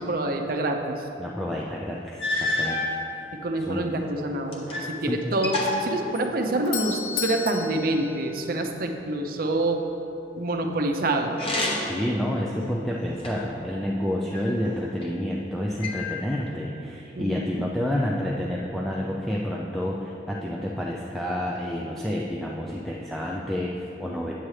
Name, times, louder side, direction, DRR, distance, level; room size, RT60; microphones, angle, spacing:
voice 1, 0.0-1.1 3.3-9.8 10.4-11.4 17.1-17.7, right 2 dB, 55° right, 4 dB, 0.6 m, -27 dB
voice 2, 1.2-2.9 3.1-3.2 3.6-3.9 5.0-5.2 11.9-24.3, equal, ahead, -4 dB, 0.4 m, -29 dB
sound 1, 1.6-1.7 2.2-3.0 3.7-4.9 5.2-6.7 11.3-12.1 12.6-13.6 14.3-15.1 15.8-16.6, left 2 dB, 30° left, 1.0 m, -30 dB
Doorbell, 6.3-9.1, left 7 dB, 65° left, 0.5 m, -34 dB
8.9 x 8.4 x 3.2 m, 3.0 s
head